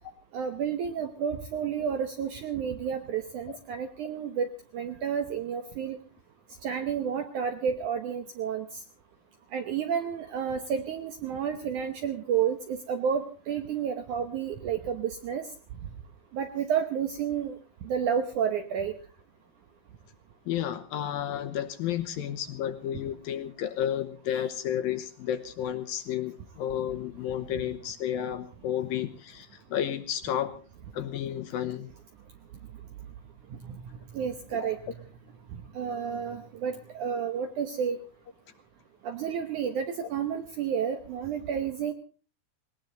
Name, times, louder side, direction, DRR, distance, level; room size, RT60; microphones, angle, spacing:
voice 1, 0.3-4.5 4.7-6.0 6.6-8.8 9.5-15.5 16.3-18.9 33.5-33.8 34.1-34.8 35.7-38.0 39.0-41.9, right 7 dB, 70° right, 8 dB, 1.9 m, -31 dB
voice 2, 20.5-30.6 30.9-31.9 34.5-34.7, left 10 dB, 70° left, 10 dB, 2.4 m, -32 dB
19.5 x 19.0 x 3.9 m, 0.37 s
omnidirectional pair, 4.8 m